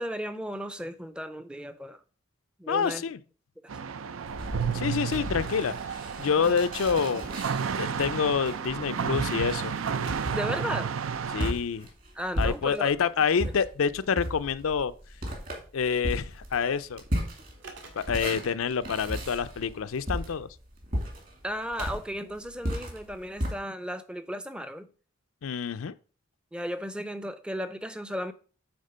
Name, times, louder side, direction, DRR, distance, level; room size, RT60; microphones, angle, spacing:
voice 1, 0.0-2.0 2.6-3.0 6.4-6.5 10.3-10.9 12.2-12.9 13.4-13.5 21.4-24.9 26.5-28.3, equal, 5° right, 0.5 m, -35 dB
voice 2, 2.7-3.2 4.7-7.2 7.8-9.7 11.3-11.9 12.4-14.9 15.7-17.0 18.0-20.5 25.4-25.9, left 6 dB, 90° left, 0.5 m, -27 dB
sound 1, 3.7-11.5, right 7 dB, 80° right, 0.5 m, -32 dB
sound 2, 4.3-13.0 13.4-23.5, equal, 45° right, 2.3 m, -35 dB
sound 3, 4.7-4.8 5.0-5.7 6.0-6.1 7.9-8.1 9.9-10.7 12.9-13.3 13.8-14.1 16.5-16.7 17.5-18.2, right 3 dB, 65° right, 1.8 m, -49 dB
8.7 x 3.6 x 5.4 m
head